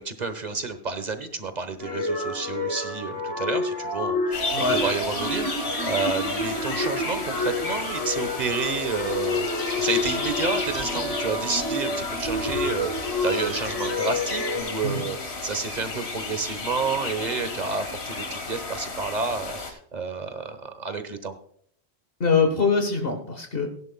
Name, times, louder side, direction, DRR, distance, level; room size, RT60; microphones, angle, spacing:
voice 1, 0.0-21.4, right 4 dB, 40° right, 9 dB, 1.2 m, -30 dB
sound 1, 1.8-14.6, left 2 dB, 20° left, 3.0 m, -29 dB
sound 2, 4.3-19.7, left 3 dB, 80° left, 1.8 m, -33 dB
voice 2, 22.2-23.7, left 4 dB, 60° left, 5 dB, 1.5 m, -23 dB
17.0 x 10.5 x 2.3 m, 0.63 s
omnidirectional pair, 1.1 m